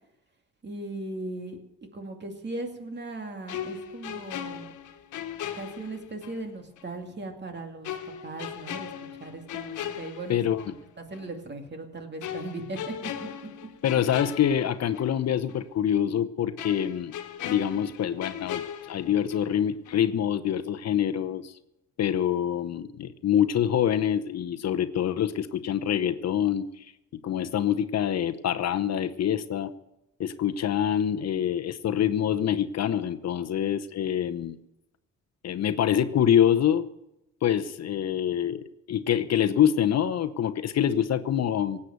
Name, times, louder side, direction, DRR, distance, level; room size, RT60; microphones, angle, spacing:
voice 1, 0.6-1.6 1.9-4.7 5.5-10.4 10.7-13.3, right 2 dB, 35° right, 5 dB, 2.5 m, -38 dB
sound 1, 3.5-6.4 6.8-6.9 7.8-10.8 11.1-11.3 12.2-15.2 15.5-15.6 16.6-19.6 19.9-20.1, left 9 dB, 80° left, 1.4 m, -38 dB
voice 2, 10.3-10.7 13.8-17.1 17.5-21.5 22.0-26.8 27.2-29.7 30.2-34.6 35.4-36.8 37.4-38.6 38.9-41.8, left 9 dB, 60° left, 10 dB, 0.9 m, -25 dB
17.5 x 8.5 x 8.0 m, 0.87 s
cardioid pair, 90°, 30 cm